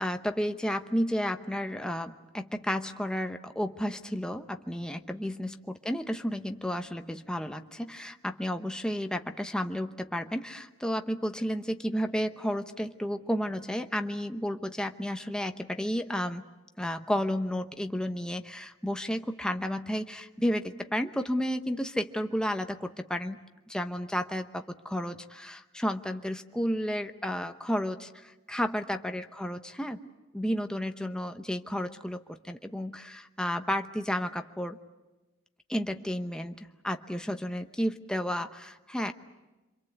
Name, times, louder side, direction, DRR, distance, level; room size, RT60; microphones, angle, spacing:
voice 1, 0.0-16.4 16.8-34.8 35.7-39.1, equal, 5° left, 6 dB, 0.9 m, -32 dB
27.5 x 25.0 x 8.1 m, 1.1 s
head